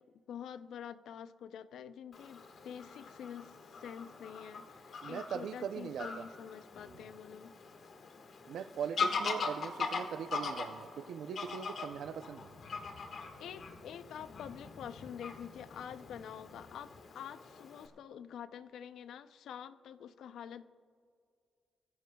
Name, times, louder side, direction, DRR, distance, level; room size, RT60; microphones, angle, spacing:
voice 1, 0.0-7.5 13.4-20.7, left 8 dB, 85° left, 12 dB, 0.5 m, -47 dB
Fowl / Bird vocalization bird call bird song, 2.1-17.9, left 4 dB, 55° left, 1.5 m, -42 dB
voice 2, 5.0-6.3 6.9-7.0 8.5-12.5, right 8 dB, 75° right, 12 dB, 0.5 m, -40 dB
23.5 x 15.5 x 2.3 m, 2.3 s
cardioid pair, 120°, 0 cm